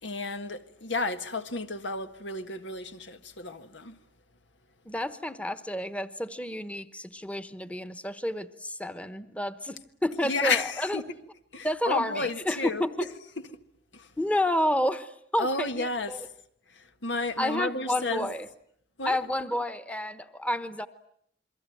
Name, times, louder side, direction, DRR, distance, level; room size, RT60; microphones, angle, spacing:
voice 1, 0.0-4.0 10.2-11.0 11.5-12.8 13.9-14.1 15.4-16.3 16.7-18.3 19.0-19.2, left 3 dB, 85° left, 1.6 m, -32 dB
voice 2, 4.8-11.0 11.6-13.1 14.2-16.2 17.4-18.5 19.0-20.9, left 1 dB, 10° left, 1.1 m, -30 dB
28.5 x 22.5 x 9.2 m
head